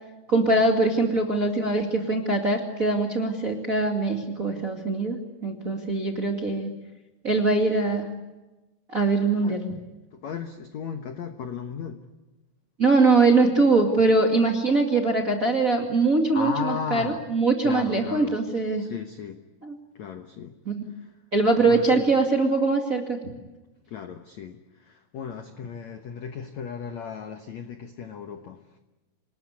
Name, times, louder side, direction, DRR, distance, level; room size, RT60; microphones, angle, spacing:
voice 1, 0.3-6.7 7.2-8.1 8.9-9.6 12.8-18.8 19.6-19.7 20.6-20.8 21.3-23.2, right 3 dB, 30° right, 2 dB, 1.7 m, -22 dB
voice 2, 10.1-12.0 16.3-17.2 17.6-18.3 18.7-19.4 19.9-20.5 21.0-21.1 21.7-22.0 23.9-28.6, left 7 dB, 70° left, 7 dB, 1.7 m, -35 dB
27.5 x 20.0 x 9.7 m, 1.1 s
omnidirectional pair, 5.0 m